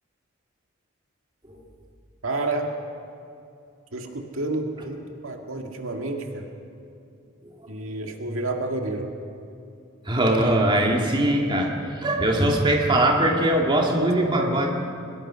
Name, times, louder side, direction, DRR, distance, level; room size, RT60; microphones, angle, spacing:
voice 1, 2.2-2.8 3.9-6.5 7.7-9.1 13.9-14.5, right 2 dB, 80° right, 2 dB, 2.0 m, -30 dB
voice 2, 7.4-8.1 10.0-14.7, right 1 dB, 25° right, 0 dB, 2.3 m, -22 dB
23.0 x 20.5 x 5.7 m, 2.6 s
head